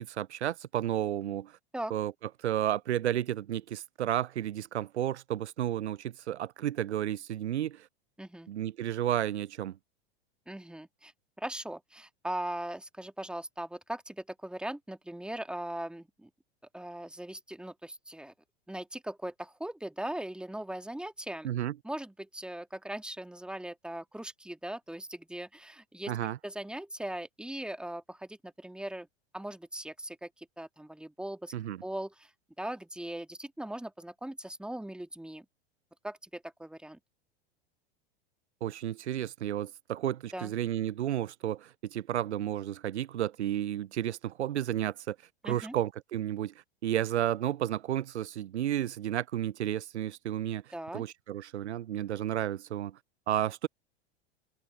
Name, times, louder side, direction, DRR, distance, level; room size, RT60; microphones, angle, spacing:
voice 1, 0.0-1.5 1.9-2.1 2.4-7.9 8.5-9.8 21.4-21.7 26.1-26.4 31.5-31.8 38.6-45.2 45.4-46.5 46.8-50.6 50.9-53.0 53.3-53.7, right 11 dB, 90° right, 0.5 m, -32 dB
voice 2, 8.2-8.5 10.5-11.1 11.4-16.3 16.7-18.3 18.7-21.5 21.8-26.2 26.4-29.1 29.3-31.5 31.8-32.3 32.6-35.4 36.0-37.0 40.3-40.5 45.4-45.7 50.7-51.0, right 1 dB, 5° right, 1.6 m, -39 dB
hypercardioid pair, 95°, 33 cm